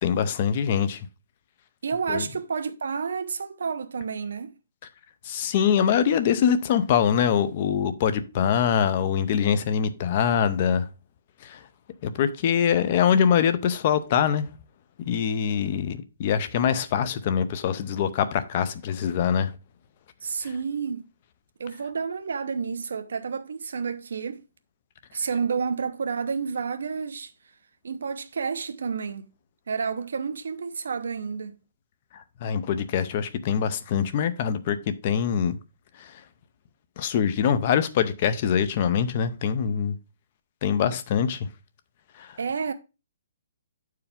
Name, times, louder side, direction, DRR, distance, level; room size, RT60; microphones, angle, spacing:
voice 1, 0.0-1.1 2.1-2.2 5.2-10.9 11.4-11.6 12.0-14.5 15.0-19.5 32.1-35.6 36.0-36.2 37.0-40.0 40.6-41.5 42.2-42.4, left 8 dB, 30° left, 0.5 m, -24 dB
voice 2, 1.8-4.5 20.2-21.0 21.6-24.4 25.1-27.3 27.8-29.3 29.7-31.6 42.4-42.7, right 5 dB, 75° right, 0.8 m, -30 dB
8.7 x 4.7 x 3.5 m
hypercardioid pair, 175°, 0 cm